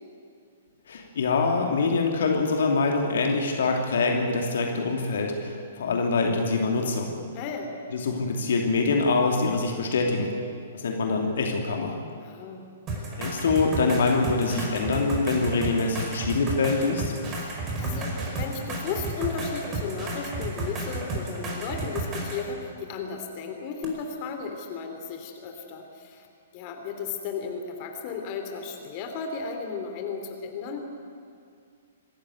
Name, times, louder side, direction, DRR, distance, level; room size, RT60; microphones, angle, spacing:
voice 1, 0.9-7.1 7.9-10.4 10.7-12.0 13.2-17.1, left 3 dB, 55° left, 2 dB, 2.9 m, -25 dB
voice 2, 7.3-7.7 12.2-12.6 17.3-26.3 26.5-30.9, left 5 dB, 35° left, 4 dB, 3.0 m, -35 dB
sound 1, 12.9-22.5 23.8-23.9, right 2 dB, 25° right, 5.1 m, -32 dB
26.0 x 14.0 x 9.4 m, 2.3 s
figure-of-eight pair, 115°, 0 cm